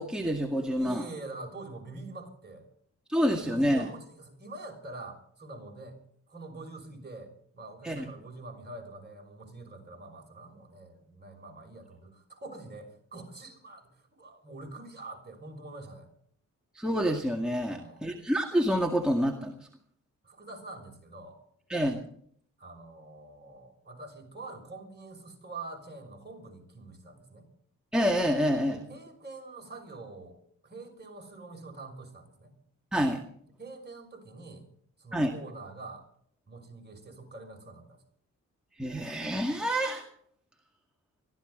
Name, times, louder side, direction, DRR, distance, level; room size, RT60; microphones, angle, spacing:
voice 1, 0.0-1.0 3.1-3.9 7.8-8.1 16.8-19.7 21.7-22.0 27.9-28.8 32.9-33.2 35.1-35.3 38.8-40.0, equal, ahead, 0 dB, 2.1 m, -27 dB
voice 2, 0.8-2.7 3.4-6.0 6.3-16.1 17.7-18.1 20.2-21.4 22.6-27.5 28.7-30.4 30.6-32.6 33.6-34.7 35.0-36.0 36.5-38.0, right 2 dB, 30° right, 2 dB, 5.9 m, -45 dB
23.5 x 14.5 x 3.9 m, 0.62 s
cardioid pair, 95°, 32 cm